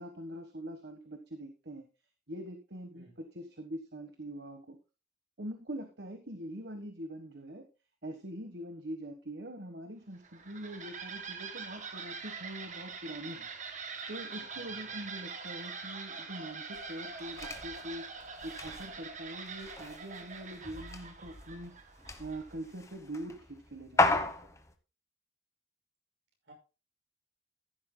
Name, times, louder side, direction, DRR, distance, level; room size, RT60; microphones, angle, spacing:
voice 1, 0.0-1.8 2.3-4.8 5.4-7.7 8.0-13.5 14.1-18.0 18.4-21.7 22.2-24.3, right 1 dB, 65° right, 6 dB, 1.4 m, -43 dB
sound 1, 10.1-22.7, right 5 dB, 40° right, 1.6 m, -44 dB
voice 2, 14.3-15.1 26.4-26.5, right 1 dB, 85° right, 1 dB, 6.3 m, -58 dB
sound 2, 16.7-24.7, left 2 dB, 15° left, 1.1 m, -36 dB
14.5 x 11.5 x 2.2 m, 0.31 s
head